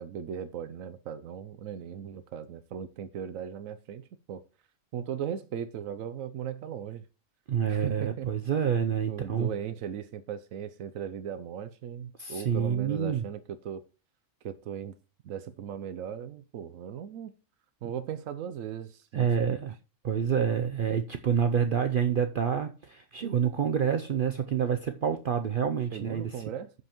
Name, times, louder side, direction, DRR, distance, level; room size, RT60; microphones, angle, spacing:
voice 1, 0.0-4.4 4.9-7.0 7.7-8.4 9.1-13.8 14.4-15.0 15.2-17.3 17.8-19.6 25.9-26.7, right 9 dB, 85° right, 1.1 m, -38 dB
voice 2, 7.5-9.5 12.2-13.2 19.1-19.7 20.0-26.4, right 7 dB, 55° right, 0.6 m, -28 dB
15.5 x 5.4 x 3.0 m
omnidirectional pair, 1.4 m